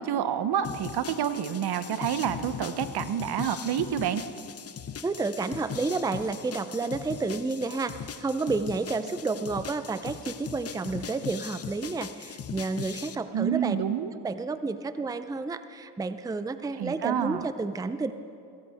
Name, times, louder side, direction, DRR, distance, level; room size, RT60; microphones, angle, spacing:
voice 1, 0.0-4.2 13.3-14.1 16.8-17.5, right 9 dB, 65° right, 12 dB, 0.8 m, -28 dB
sound 1, 0.6-13.2, left 8 dB, 35° left, 0.6 m, -40 dB
voice 2, 5.0-13.8 14.2-18.1, right 3 dB, 10° right, 12 dB, 0.5 m, -30 dB
16.0 x 15.5 x 3.5 m, 2.4 s
supercardioid pair, 60°, 41 cm